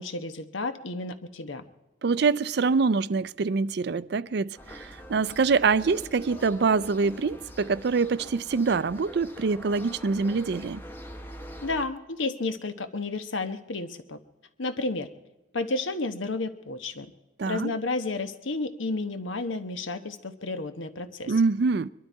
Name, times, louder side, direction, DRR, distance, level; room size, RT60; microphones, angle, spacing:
voice 1, 0.0-1.6 11.6-14.2 14.6-15.1 15.5-17.1 17.5-21.3, left 3 dB, 80° left, 1.1 m, -31 dB
voice 2, 2.0-10.8 17.4-17.7 21.3-21.9, right 4 dB, 55° right, 0.4 m, -25 dB
sound 1, 4.6-11.9, equal, 10° left, 0.9 m, -44 dB
22.5 x 12.5 x 4.6 m
head